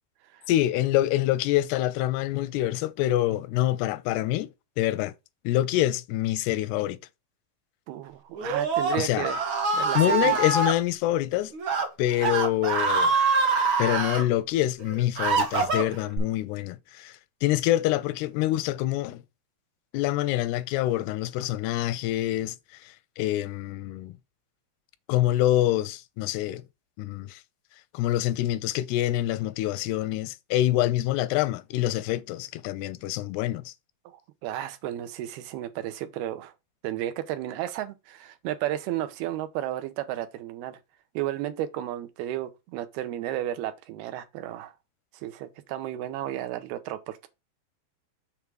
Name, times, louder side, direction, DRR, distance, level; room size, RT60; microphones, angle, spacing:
voice 1, 0.5-4.5 4.8-5.1 5.5-7.0 9.0-9.3 10.0-11.5 12.0-13.1 13.8-17.1 17.4-19.2 19.9-22.6 23.2-24.1 25.1-26.6 27.0-27.4 27.9-33.7, left 14 dB, 90° left, 2.6 m, -26 dB
voice 2, 7.9-9.4 9.7-10.4 34.1-36.5 36.8-40.8 41.1-44.7 45.1-47.3, right 13 dB, 80° right, 2.8 m, -33 dB
Screaming, 8.4-10.7 11.5-11.9 12.2-14.2 14.8-16.2, right 4 dB, 55° right, 1.4 m, -25 dB
7.2 x 3.4 x 6.2 m
omnidirectional pair, 4.5 m